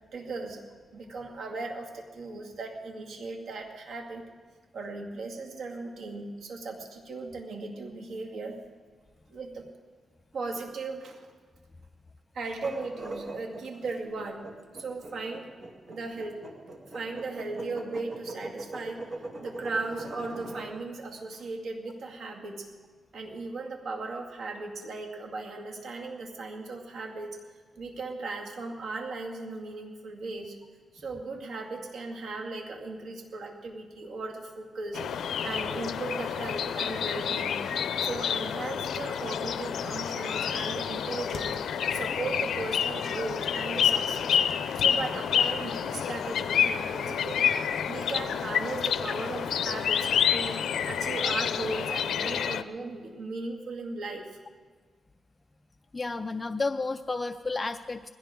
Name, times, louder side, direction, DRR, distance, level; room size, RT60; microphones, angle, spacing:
voice 1, 0.1-0.6 0.9-4.2 4.7-8.6 9.3-9.7 10.3-11.3 12.3-14.5 14.7-15.5 15.9-16.4 16.9-19.0 19.4-22.7 23.1-27.4 27.8-30.6 30.9-37.7 38.0-44.4 44.8-47.5 47.9-54.3, right 3 dB, 75° right, 1 dB, 2.2 m, -37 dB
sound 1, 12.5-20.7, right 2 dB, 45° right, 2.1 m, -41 dB
sound 2, 34.9-52.6, left 8 dB, 85° left, 0.6 m, -29 dB
sound 3, 40.9-42.3 42.7-46.5 46.8-46.9, left 5 dB, 60° left, 1.3 m, -51 dB
voice 2, 55.9-58.1, left 3 dB, 25° left, 7 dB, 0.4 m, -31 dB
20.5 x 16.5 x 3.7 m, 1.5 s
cardioid pair, 105°, 0 cm